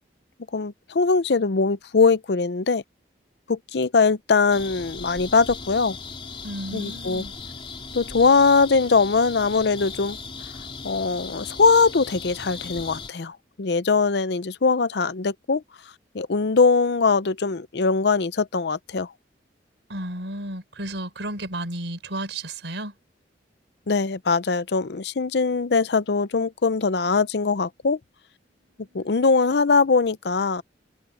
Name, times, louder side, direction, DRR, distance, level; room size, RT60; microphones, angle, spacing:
voice 1, 0.5-2.8 3.5-6.0 6.7-7.2 7.9-10.2 10.8-15.6 16.1-19.1 23.9-28.0 28.9-30.6, left 4 dB, 65° left, 0.6 m, -21 dB
sound 1, 4.5-13.1, left 4 dB, 30° left, 3.1 m, -38 dB
voice 2, 6.4-7.3 19.9-22.9 28.6-29.2, right 1 dB, 90° right, 4.6 m, -33 dB
head